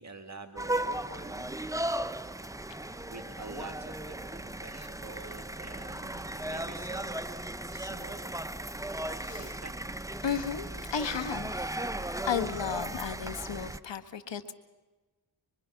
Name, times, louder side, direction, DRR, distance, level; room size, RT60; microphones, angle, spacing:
voice 1, 0.0-2.4 3.0-7.2 7.7-8.2 9.1-9.7, right 3 dB, 35° right, 5 dB, 2.3 m, -48 dB
sound 1, 0.6-13.8, right 1 dB, 5° right, 0.9 m, -36 dB
voice 2, 10.2-11.7 12.2-14.5, left 7 dB, 70° left, 9 dB, 1.9 m, -34 dB
24.5 x 24.5 x 6.0 m, 1.2 s
cardioid pair, 55°, 45 cm